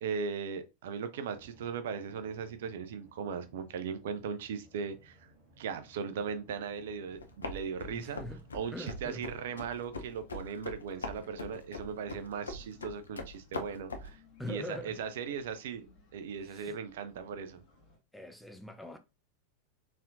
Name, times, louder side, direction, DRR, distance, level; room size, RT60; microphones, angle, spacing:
voice 1, 0.0-5.3 5.6-8.2 8.5-14.2 14.5-15.9 16.1-17.6, right 6 dB, 55° right, 0.5 m, -38 dB
sound 1, 1.3-8.9, equal, 40° right, 1.5 m, -61 dB
sound 2, 7.1-14.1, left 2 dB, 75° left, 0.6 m, -42 dB
sound 3, 7.7-18.0, left 3 dB, 40° left, 1.9 m, -62 dB
voice 2, 7.9-8.4 8.7-9.2 14.4-15.0 16.5-16.7 18.1-19.0, left 1 dB, 5° left, 0.6 m, -43 dB
4.3 x 3.6 x 2.5 m
figure-of-eight pair, 90°, 0 cm